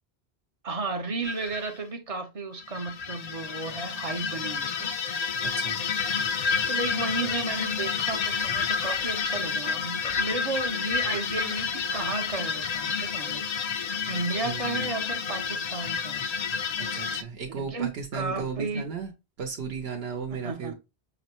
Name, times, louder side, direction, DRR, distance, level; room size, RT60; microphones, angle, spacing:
voice 1, 0.6-4.9 6.7-13.4 14.1-16.2 17.5-18.8 20.4-20.7, right 3 dB, 40° right, 0.6 m, -33 dB
sound 1, 1.2-1.7 2.6-17.2, left 6 dB, 55° left, 0.4 m, -30 dB
voice 2, 14.4-14.9 16.8-19.1 19.4-20.7, right 5 dB, 70° right, 0.9 m, -35 dB
5.8 x 2.1 x 2.8 m
omnidirectional pair, 1.1 m